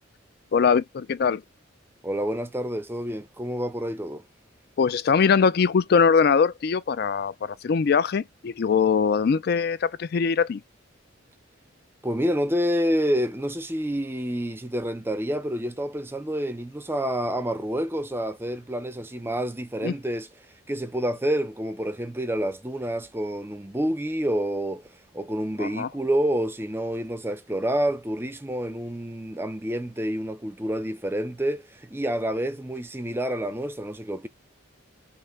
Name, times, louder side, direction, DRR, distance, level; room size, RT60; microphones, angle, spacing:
voice 1, 0.5-1.4 4.8-10.6 19.8-19.9 25.6-25.9, left 6 dB, 50° left, 0.3 m, -22 dB
voice 2, 2.0-4.2 12.0-20.3 20.7-24.8 25.1-34.3, equal, 10° right, 0.5 m, -28 dB
5.7 x 2.1 x 3.2 m
head